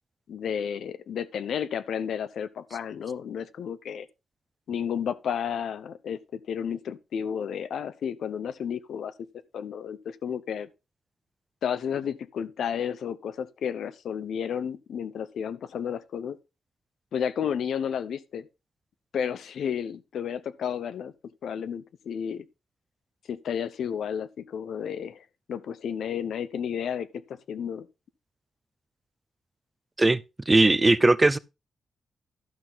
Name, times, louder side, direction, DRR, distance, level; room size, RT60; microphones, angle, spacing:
voice 1, 0.3-4.1 4.7-9.1 9.5-10.7 11.6-16.4 17.1-18.5 19.1-21.1 21.4-22.5 23.3-27.9, left 8 dB, 80° left, 0.7 m, -32 dB
voice 2, 30.5-31.4, right 2 dB, 20° right, 0.6 m, -19 dB
12.0 x 5.9 x 4.0 m
cardioid pair, 90°, 0 cm